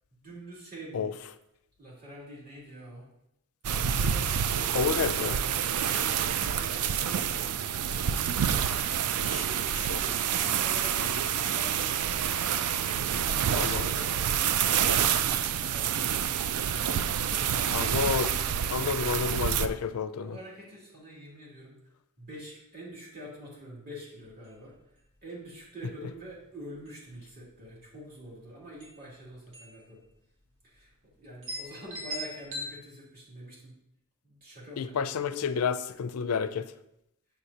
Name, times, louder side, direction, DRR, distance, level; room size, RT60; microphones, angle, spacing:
voice 1, 0.1-1.1 1.8-3.1 3.9-5.5 5.9-7.7 9.2-9.6 9.9-12.3 13.2-14.4 14.7-16.2 19.6-19.8 20.2-21.7 22.2-24.7 25.2-30.0 30.6-30.9 31.2-33.7 34.2-35.5, equal, 45° right, -6 dB, 2.6 m, -45 dB
sound 1, 3.6-19.7, right 8 dB, 80° right, 0.4 m, -28 dB
voice 2, 4.7-5.4 9.3-9.4 9.9-10.0 13.5-13.9 17.7-18.4 18.7-20.4 34.8-36.7, left 6 dB, 70° left, 11 dB, 0.4 m, -30 dB
sound 2, 24.3-24.5 24.8-24.9 25.3-25.6 26.2-26.4 26.7-27.4 28.5-28.6 28.8-29.0 29.5-29.8 30.1-30.2 30.9-31.0 31.4-32.7, equal, 60° right, 2.0 m, -39 dB
7.8 x 6.7 x 2.8 m, 0.83 s
head